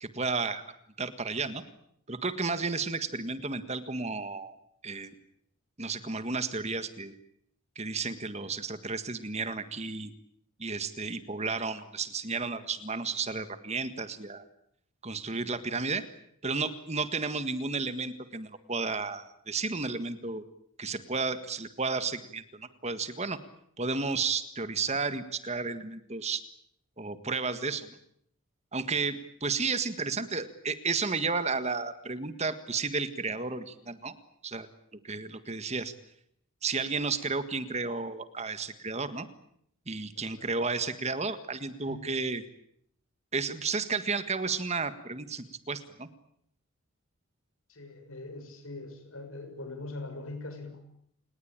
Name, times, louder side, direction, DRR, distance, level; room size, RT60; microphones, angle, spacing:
voice 1, 0.0-0.6 1.0-1.6 2.1-4.6 4.8-5.1 5.8-7.2 7.7-10.1 10.6-14.4 15.0-16.0 16.4-20.4 20.8-23.4 23.8-26.4 27.0-28.0 28.7-34.1 34.4-34.7 35.0-35.9 36.6-39.3 39.9-42.4 43.3-46.1, right 4 dB, 30° right, 11 dB, 1.7 m, -32 dB
voice 2, 47.7-50.8, left 2 dB, 80° left, 8 dB, 6.6 m, -42 dB
29.5 x 19.5 x 8.9 m, 0.70 s
head